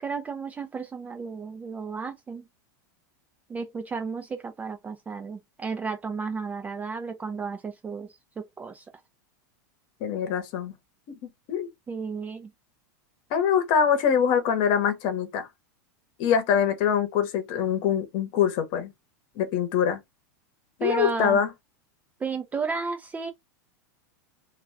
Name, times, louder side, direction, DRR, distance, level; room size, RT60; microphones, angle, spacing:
voice 1, 0.0-2.4 3.5-8.1 8.4-8.8 11.9-12.5 20.8-21.4 22.2-23.3, right 5 dB, 15° right, 0.4 m, -33 dB
voice 2, 10.0-10.7 11.5-11.7 13.3-15.5 16.2-18.9 19.4-20.0 20.8-21.5, left 8 dB, 50° left, 0.9 m, -24 dB
2.3 x 2.3 x 3.1 m
hypercardioid pair, 120°, 10 cm